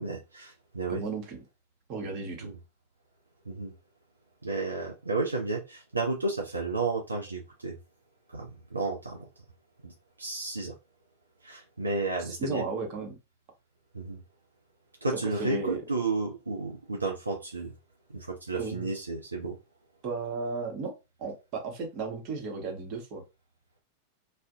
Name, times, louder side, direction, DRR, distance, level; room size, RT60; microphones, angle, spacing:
voice 1, 0.0-1.0 2.4-2.5 3.5-3.7 4.4-7.8 8.3-9.2 9.8-9.9 10.2-10.7 11.4-12.6 13.9-14.2 15.0-17.7 18.1-19.6, right 3 dB, 80° right, 0.5 m, -32 dB
voice 2, 0.9-1.4 1.9-2.5 12.2-13.2 15.2-15.8 18.6-18.9 20.0-20.9 21.2-23.2, right 4 dB, 40° right, 0.9 m, -34 dB
2.4 x 2.1 x 2.5 m
figure-of-eight pair, 90°, 0 cm